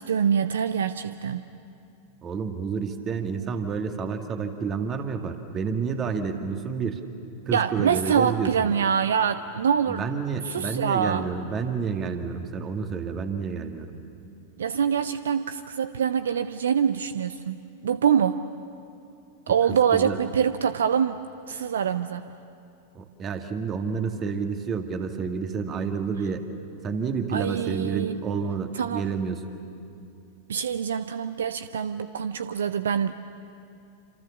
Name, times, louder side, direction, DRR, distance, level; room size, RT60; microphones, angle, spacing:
voice 1, 0.0-1.5 7.5-10.1 10.4-11.3 14.6-18.4 19.5-21.2 21.5-22.2 27.3-28.2 28.7-29.0 30.5-33.1, right 7 dB, 65° right, 13 dB, 0.6 m, -25 dB
voice 2, 2.2-7.0 7.5-8.7 9.9-13.9 19.7-20.2 23.0-26.4 26.8-29.4, right 5 dB, 25° right, 6 dB, 2.0 m, -29 dB
27.5 x 27.0 x 7.1 m, 2.6 s
figure-of-eight pair, 90°, 0 cm